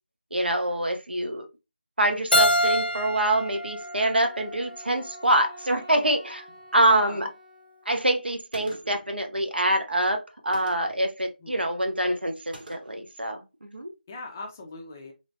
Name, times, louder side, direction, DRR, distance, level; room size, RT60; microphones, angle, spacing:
voice 1, 0.3-1.5 2.0-6.4 6.7-7.3 7.9-13.9, right 1 dB, 90° right, 0.7 m, -25 dB
Keyboard (musical), 2.3-5.1, equal, 75° left, 0.5 m, -26 dB
Wind instrument woodwind instrument, 3.8-8.0, equal, 15° right, 0.7 m, -49 dB
voice 2, 6.7-7.3 11.4-11.7 14.1-15.1, left 3 dB, 15° left, 0.4 m, -40 dB
Gunshot gunfire, 8.5-9.1 10.5-11.1 12.5-13.1, right 1 dB, 60° right, 0.9 m, -45 dB
3.1 x 2.1 x 2.5 m
figure-of-eight pair, 165°, 5 cm